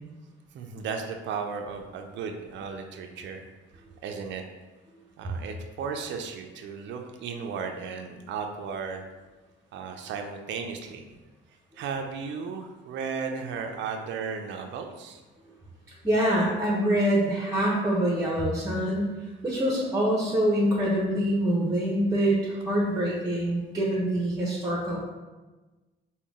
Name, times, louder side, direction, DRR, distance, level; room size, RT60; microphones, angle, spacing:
voice 1, 0.5-3.4 3.7-4.4 5.2-9.0 9.7-11.0 11.8-15.2, right 5 dB, 65° right, 4 dB, 0.4 m, -35 dB
voice 2, 16.0-25.0, right 1 dB, 15° right, -4 dB, 0.7 m, -25 dB
3.7 x 2.2 x 3.5 m, 1.2 s
cardioid pair, 90°, 20 cm